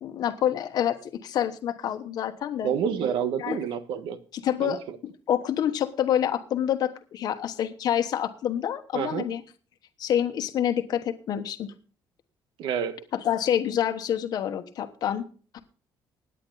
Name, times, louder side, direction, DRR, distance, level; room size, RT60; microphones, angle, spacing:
voice 1, 0.0-2.7 3.4-3.6 4.3-9.4 10.0-11.7 13.1-15.2, left 10 dB, 55° left, 1.1 m, -27 dB
voice 2, 2.6-4.2 4.6-4.7 8.9-9.3 12.6-13.0, right 8 dB, 80° right, 1.5 m, -28 dB
17.0 x 9.8 x 4.0 m
cardioid pair, 165°, 8 cm